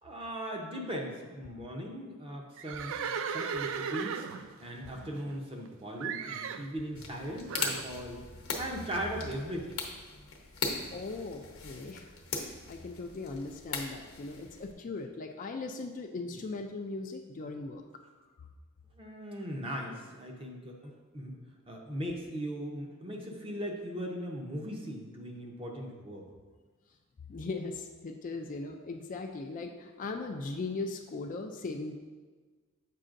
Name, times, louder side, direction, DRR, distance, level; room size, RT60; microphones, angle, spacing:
voice 1, 0.0-3.0 3.3-4.3 4.6-8.2 8.6-9.8 19.0-21.4 21.7-26.3, equal, 25° right, 0 dB, 0.7 m, -38 dB
Livestock farm animals working animals, 2.6-5.7 6.0-6.7 7.5-7.9, right 6 dB, 65° right, 0.3 m, -36 dB
sound 1, 6.9-14.7, left 4 dB, 75° left, 0.9 m, -39 dB
voice 2, 10.9-12.0 12.3-17.8 18.4-18.5 27.3-31.9, left 3 dB, 35° left, 4 dB, 0.4 m, -39 dB
7.5 x 5.4 x 2.5 m, 1.4 s
head